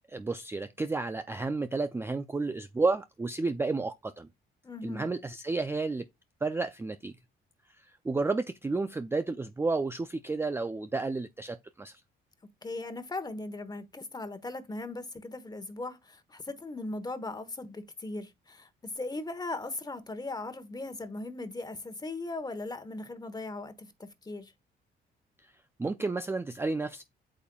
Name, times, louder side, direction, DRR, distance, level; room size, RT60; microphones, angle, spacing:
voice 1, 0.1-4.3 4.8-6.1 6.4-7.1 7.8-12.0 25.8-27.0, right 3 dB, 10° right, 0.3 m, -31 dB
voice 2, 4.6-5.1 12.6-24.5, left 2 dB, 20° left, 1.1 m, -38 dB
8.5 x 5.3 x 2.3 m
cardioid pair, 90°, 20 cm